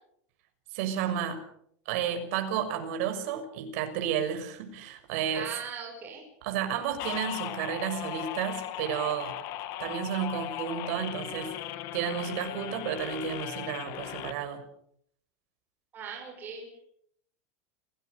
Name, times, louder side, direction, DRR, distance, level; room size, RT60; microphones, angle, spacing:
voice 1, 0.7-1.4 1.8-5.4 6.4-9.4 9.8-11.5 11.9-14.6, right 8 dB, 55° right, 6 dB, 6.4 m, -32 dB
voice 2, 5.3-6.2 15.9-16.9, right 6 dB, 25° right, 0 dB, 5.9 m, -39 dB
sound 1, 7.0-14.3, left 13 dB, 40° left, 2.2 m, -37 dB
30.0 x 18.5 x 6.8 m, 0.70 s
supercardioid pair, 170°, 9 cm